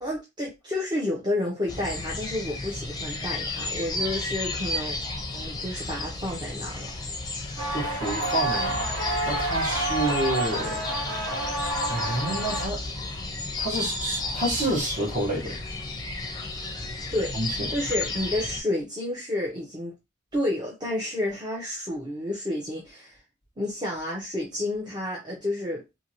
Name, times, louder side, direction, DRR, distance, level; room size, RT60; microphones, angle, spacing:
voice 1, 0.0-5.0 5.3-6.9 17.1-19.9 20.3-23.2 23.6-25.8, left 1 dB, 20° right, 0.6 m, -30 dB
sound 1, 1.7-18.6, left 2 dB, 20° left, 0.6 m, -33 dB
sound 2, 7.6-12.7, right 2 dB, 65° right, 1.4 m, -29 dB
voice 2, 7.7-8.8 9.3-10.8 11.9-12.8 13.6-15.6 17.4-17.5, right 1 dB, 35° right, 1.1 m, -28 dB
2.8 x 2.7 x 2.8 m
head